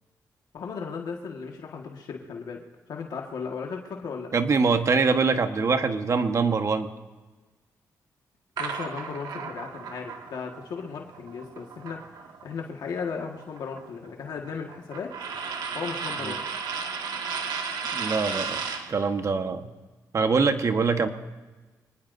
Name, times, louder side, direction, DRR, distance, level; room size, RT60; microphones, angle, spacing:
voice 1, 0.5-2.6 2.9-4.3 8.6-15.1 15.7-16.4, left 5 dB, 75° left, 1 dB, 1.6 m, -36 dB
voice 2, 4.3-6.9 16.2-16.4 17.9-18.6 18.9-19.7 20.1-21.1, right 4 dB, 45° right, 7 dB, 1.2 m, -24 dB
sound 1, 8.6-12.6 12.9-18.9, right 5 dB, 85° right, 1.6 m, -34 dB
25.0 x 19.5 x 2.7 m, 1.3 s
cardioid pair, 85°, 7 cm